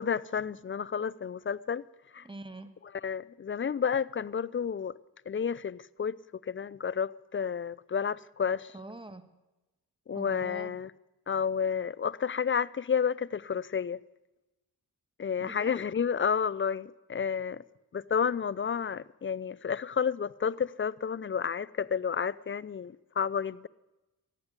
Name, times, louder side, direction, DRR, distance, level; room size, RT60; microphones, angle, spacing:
voice 1, 0.0-1.9 2.1-2.3 2.8-5.0 5.3-8.7 10.1-10.9 11.3-14.0 15.2-17.6 17.9-23.7, left 7 dB, 30° left, 0.4 m, -31 dB
voice 2, 2.2-2.7 8.7-9.2 10.1-10.7 15.4-15.8, right 2 dB, 10° right, 1.5 m, -44 dB
14.0 x 9.7 x 8.0 m
cardioid pair, 60°, 42 cm